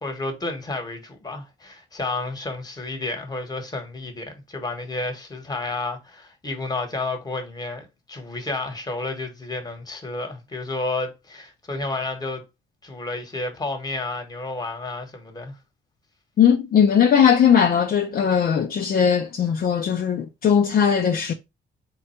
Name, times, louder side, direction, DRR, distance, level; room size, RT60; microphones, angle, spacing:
voice 1, 0.0-12.4 12.8-15.5, left 2 dB, 20° left, 1.2 m, -31 dB
voice 2, 16.4-21.3, left 8 dB, 45° left, 0.5 m, -19 dB
3.8 x 2.2 x 4.3 m
cardioid pair, 90°, 20 cm